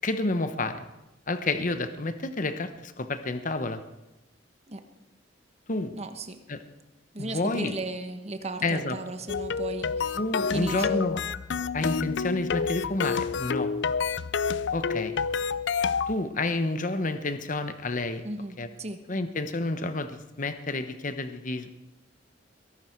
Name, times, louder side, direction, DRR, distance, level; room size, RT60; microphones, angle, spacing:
voice 1, 0.0-0.9 1.3-3.8 5.7-5.9 6.5-6.6 7.2-7.7 8.6-9.0 10.2-11.2 11.7-13.7 14.7-15.1 16.1-18.2 18.6-18.7 19.1-21.7, left 2 dB, 45° left, 9 dB, 1.0 m, -29 dB
voice 2, 5.9-6.4 7.1-10.2 10.5-11.0 18.2-19.0, right 2 dB, 35° right, 7 dB, 1.3 m, -35 dB
sound 1, 9.3-16.2, left 5 dB, 70° left, 0.5 m, -29 dB
22.5 x 12.5 x 4.6 m, 1.0 s
head